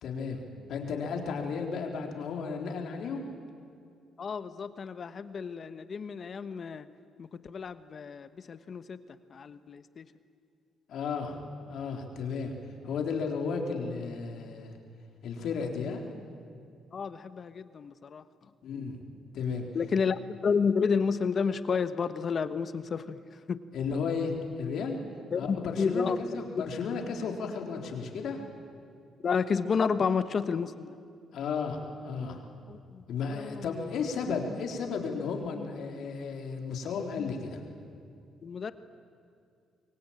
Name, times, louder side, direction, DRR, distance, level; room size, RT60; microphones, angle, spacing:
voice 1, 0.0-0.4 0.7-3.2 10.9-12.5 12.8-14.8 15.2-16.0 18.6-19.0 19.3-19.7 23.7-25.0 25.4-28.4 31.3-32.4 33.1-37.6, left 5 dB, 70° left, 3 dB, 3.9 m, -34 dB
voice 2, 4.2-6.9 7.2-9.0 9.3-10.0 16.9-18.2 19.7-23.2 23.5-23.6 25.3-26.2 26.5-26.6 29.2-31.0 32.7-33.0 33.3-33.9 34.3-34.4 38.4-38.7, left 5 dB, 50° left, 12 dB, 1.1 m, -31 dB
26.0 x 23.0 x 8.9 m, 2.4 s
cardioid pair, 90°, 0 cm